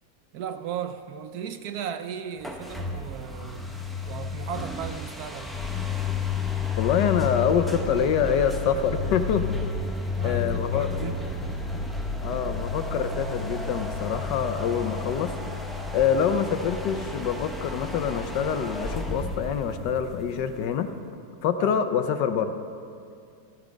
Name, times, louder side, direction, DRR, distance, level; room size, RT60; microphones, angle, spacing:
voice 1, 0.3-3.7 4.0-5.5 10.2-11.9 12.3-12.4 21.6-21.8, right 8 dB, 70° right, 9 dB, 1.1 m, -36 dB
sound 1, 2.4-20.9, left 4 dB, ahead, 0.6 m, -32 dB
voice 2, 6.8-9.4 10.2-10.9 12.2-15.6 15.9-20.9 21.4-22.5, left 7 dB, 85° left, 9 dB, 1.4 m, -26 dB
14.0 x 13.0 x 5.1 m, 2.4 s
omnidirectional pair, 1.8 m